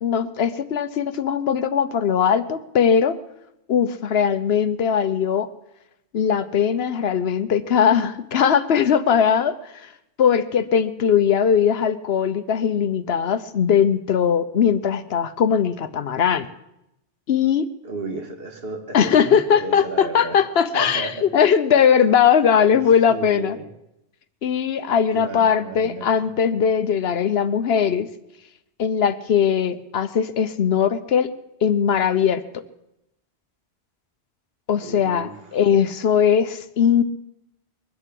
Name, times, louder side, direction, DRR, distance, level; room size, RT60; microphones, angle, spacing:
voice 1, 0.0-3.2 3.7-5.5 6.1-9.9 10.2-16.5 17.3-17.6 18.9-23.6 24.4-28.1 28.8-31.3 31.6-32.4 34.7-37.0, left 7 dB, 70° left, 13 dB, 1.0 m, -20 dB
voice 2, 17.8-20.4 20.7-21.3 22.7-22.8 23.1-23.7 25.1-26.3 34.8-35.6, right 2 dB, 65° right, 4 dB, 2.1 m, -34 dB
21.5 x 8.0 x 7.6 m, 0.85 s
omnidirectional pair, 1.1 m